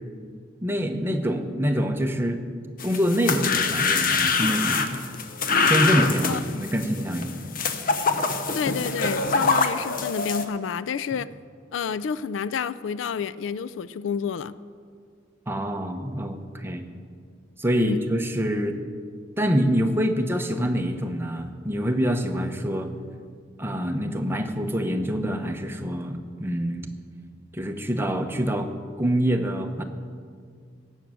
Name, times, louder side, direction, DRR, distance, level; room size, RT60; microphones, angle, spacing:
voice 1, 0.6-2.4 2.8-5.0 5.6-7.3 9.4-9.5 15.5-16.9 17.6-18.8 19.4-22.9 23.6-26.9 27.5-28.7 29.0-29.8, equal, 10° right, 5 dB, 0.9 m, -25 dB
sound 1, 2.8-10.4, left 4 dB, 50° left, 0.8 m, -24 dB
voice 2, 8.5-11.3 11.7-14.6 17.7-18.0, left 6 dB, 80° left, 16 dB, 0.4 m, -29 dB
17.5 x 6.3 x 7.6 m, 2.1 s
head